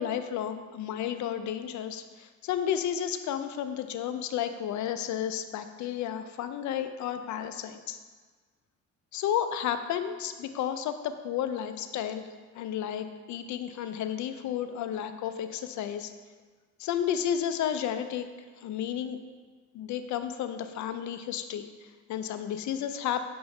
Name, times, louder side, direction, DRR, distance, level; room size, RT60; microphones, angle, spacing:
voice 1, 0.0-8.0 9.1-12.2 12.6-16.1 16.8-18.3 18.6-19.2 19.7-23.3, left 9 dB, 70° left, 9 dB, 0.5 m, -32 dB
6.6 x 4.4 x 3.2 m, 1.4 s
cardioid pair, 90°, 30 cm